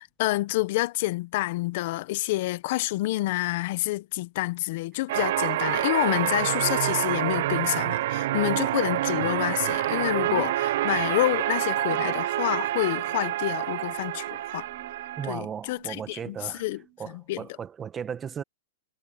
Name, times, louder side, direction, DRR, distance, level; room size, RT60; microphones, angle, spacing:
voice 1, 0.0-14.7 15.3-16.8 17.3-17.5, left 18 dB, 50° left, 0.8 m, -28 dB
sound 1, 5.1-15.4, right 14 dB, 60° right, 0.5 m, -27 dB
sound 2, 13.3-17.0, right 19 dB, 35° right, 3.2 m, -56 dB
voice 2, 15.2-16.6 17.0-18.4, right 7 dB, 15° right, 1.4 m, -36 dB
supercardioid pair, 160°, 0 cm